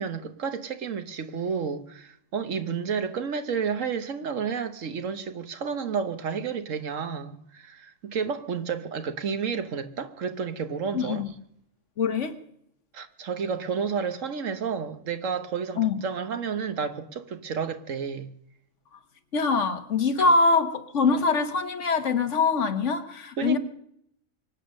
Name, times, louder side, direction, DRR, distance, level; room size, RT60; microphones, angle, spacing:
voice 1, 0.0-11.2 12.9-18.3 20.2-20.3 23.4-23.6, right 6 dB, 65° right, 1.4 m, -31 dB
voice 2, 10.9-11.3 12.0-12.4 15.8-16.0 18.9-19.0 19.3-23.6, left 4 dB, 60° left, 1.5 m, -24 dB
24.0 x 8.9 x 6.5 m
omnidirectional pair, 1.4 m